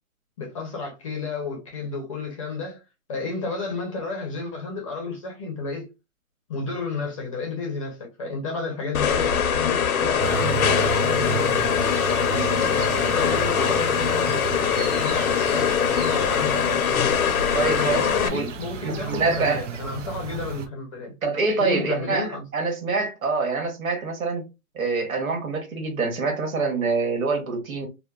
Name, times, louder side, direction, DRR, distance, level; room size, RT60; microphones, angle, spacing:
voice 1, 0.4-2.8 3.1-5.9 6.5-11.7 12.7-16.8 17.6-21.1 21.6-22.4, left 4 dB, 25° left, 0.6 m, -32 dB
sound 1, 8.9-18.3, left 8 dB, 85° left, 0.6 m, -22 dB
sound 2, 10.2-20.7, right 7 dB, 60° right, 0.6 m, -33 dB
voice 2, 17.5-18.5 18.8-19.7 21.2-24.4 24.7-27.9, right 4 dB, 75° right, 1.3 m, -25 dB
2.8 x 2.2 x 2.3 m
hypercardioid pair, 155°, 42 cm